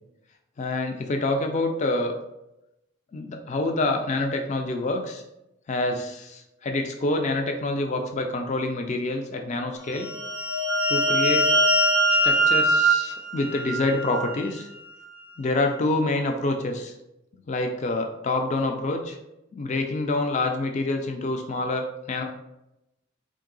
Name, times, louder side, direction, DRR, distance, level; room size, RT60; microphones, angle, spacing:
voice 1, 0.6-2.1 3.1-5.2 5.7-10.1 10.9-11.5 12.1-14.7 15.4-16.9 17.5-19.2 19.5-22.2, left 2 dB, 35° left, 4 dB, 0.3 m, -27 dB
sound 1, 10.0-14.4, right 1 dB, 70° left, 1.2 m, -22 dB
3.7 x 2.6 x 3.8 m, 0.90 s
head